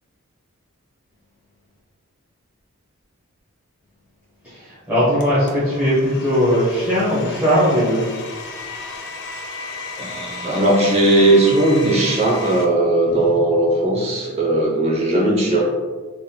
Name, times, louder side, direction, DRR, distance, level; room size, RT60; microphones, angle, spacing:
voice 1, 4.4-8.0 8.5-9.0 13.1-13.4, equal, 10° right, -13 dB, 1.1 m, -20 dB
Domestic sounds home sounds, 5.2-12.6, left 3 dB, 55° left, 0.5 m, -34 dB
voice 2, 10.0-15.6, right 1 dB, 30° right, -2 dB, 0.7 m, -17 dB
3.9 x 3.8 x 2.2 m, 1.5 s
head